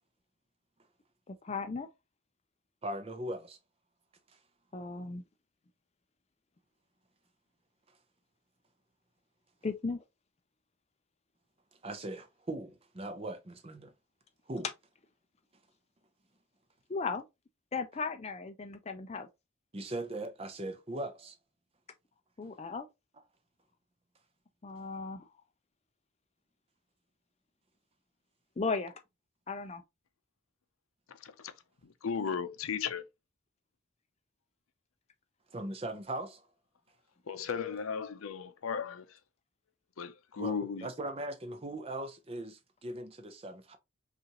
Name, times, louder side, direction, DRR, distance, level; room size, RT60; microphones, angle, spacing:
voice 1, 1.3-1.9 4.7-5.2 9.6-10.0 16.9-17.3 17.7-19.3 22.4-22.9 24.6-25.3 28.6-28.9 29.5-29.8, left 4 dB, 30° left, 0.4 m, -36 dB
voice 2, 2.8-3.6 11.8-13.9 14.5-14.7 19.7-21.3 35.5-36.5 40.4-43.8, right 1 dB, 30° right, 0.6 m, -39 dB
voice 3, 31.1-31.5 32.0-33.0 37.3-39.1 40.0-40.9, left 6 dB, 85° left, 0.5 m, -36 dB
5.5 x 2.5 x 2.9 m
head